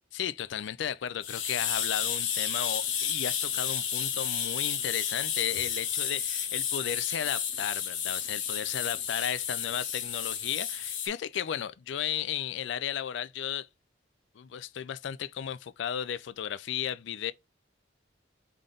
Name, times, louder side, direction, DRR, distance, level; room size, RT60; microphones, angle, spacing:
voice 1, 0.1-13.7 14.4-17.3, left 9 dB, 70° left, 0.3 m, -34 dB
sound 1, 1.2-11.1, left 8 dB, 85° left, 1.0 m, -32 dB
3.8 x 3.4 x 3.7 m
head